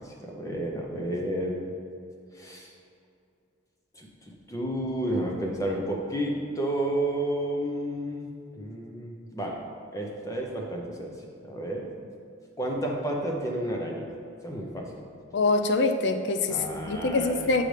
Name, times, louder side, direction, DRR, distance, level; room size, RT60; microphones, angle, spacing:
voice 1, 0.0-1.7 2.3-2.7 3.9-8.3 8.6-9.6 9.9-11.1 11.4-11.9 12.6-14.1 14.4-15.0 16.5-17.6, right 1 dB, 15° left, -1 dB, 0.8 m, -31 dB
voice 2, 15.3-17.6, left 3 dB, 55° left, 6 dB, 0.5 m, -25 dB
7.6 x 6.5 x 3.3 m, 2.5 s
head